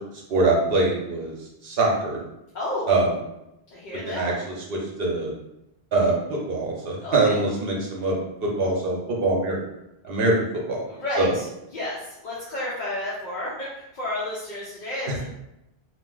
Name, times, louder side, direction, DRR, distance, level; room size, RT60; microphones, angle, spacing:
voice 1, 0.3-1.4 1.6-2.2 2.9-3.2 4.1-5.3 5.9-8.1 8.4-9.6 10.0-10.8 11.2-11.4 15.1-15.2, right 2 dB, 65° right, -2 dB, 0.9 m, -23 dB
voice 2, 2.5-2.9 3.7-4.4 7.0-7.3 10.9-11.5 11.7-15.3, left 1 dB, 55° left, -7 dB, 0.7 m, -31 dB
2.6 x 2.1 x 3.7 m, 0.86 s
omnidirectional pair, 1.1 m